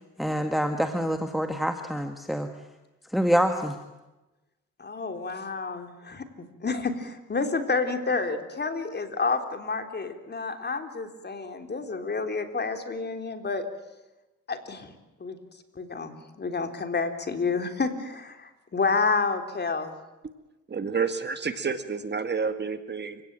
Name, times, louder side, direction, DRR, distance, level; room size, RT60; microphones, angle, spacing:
voice 1, 0.2-2.5 3.1-3.8, equal, ahead, 6 dB, 1.9 m, -26 dB
voice 2, 4.8-13.7 14.5-14.9 15.2-15.4 15.8-19.9, left 4 dB, 35° left, 6 dB, 3.6 m, -29 dB
voice 3, 20.7-23.2, right 5 dB, 35° right, 9 dB, 2.0 m, -29 dB
29.5 x 17.5 x 9.0 m, 1.0 s
cardioid pair, 90°, 30 cm